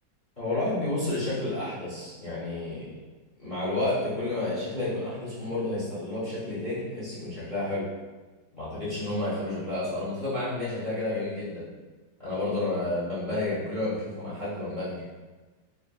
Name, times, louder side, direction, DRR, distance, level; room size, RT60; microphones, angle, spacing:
voice 1, 0.4-2.9 3.4-7.8 8.5-11.7 12.2-15.0, left 2 dB, 30° left, -11 dB, 1.1 m, -30 dB
4.3 x 3.6 x 2.3 m, 1.2 s
omnidirectional pair, 2.0 m